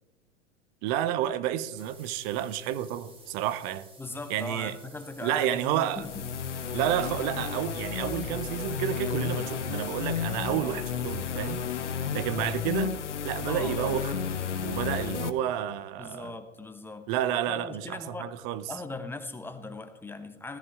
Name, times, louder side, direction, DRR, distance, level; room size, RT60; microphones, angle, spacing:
voice 1, 0.8-3.9 4.3-4.8 5.2-6.0 6.7-11.6 12.1-13.0 13.2-14.1 14.6-16.3 17.1-18.7, right 11 dB, 35° right, 0.8 m, -30 dB
sound 1, 1.8-11.8, right 2 dB, 15° right, 2.9 m, -54 dB
voice 2, 4.0-6.3 10.6-10.8 13.5-14.0 16.0-17.1 17.5-18.3 18.7-20.6, left 3 dB, 5° left, 1.1 m, -39 dB
sound 2, 5.9-15.3, left 7 dB, 70° left, 1.2 m, -32 dB
16.5 x 13.5 x 3.6 m
figure-of-eight pair, 95°, 37 cm